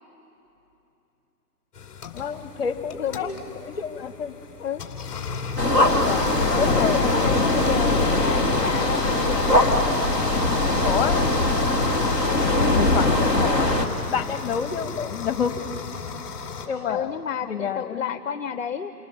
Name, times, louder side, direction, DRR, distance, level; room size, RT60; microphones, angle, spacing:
sound 1, 1.7-16.7, left 5 dB, 15° left, 2.2 m, -34 dB
voice 1, 2.1-4.3 6.0-6.3 6.6-7.3 10.8-11.3 12.7-13.7 14.1-15.6 16.6-17.2 17.5-18.2, left 7 dB, 35° left, 9 dB, 1.6 m, -29 dB
voice 2, 3.0-3.3 4.6-4.8 6.5-9.4 16.9-18.9, left 8 dB, 50° left, 10 dB, 0.9 m, -30 dB
sound 2, 5.6-13.9, left 2 dB, 5° right, 0.7 m, -21 dB
29.0 x 25.5 x 6.7 m, 2.9 s
hypercardioid pair, 155°, 48 cm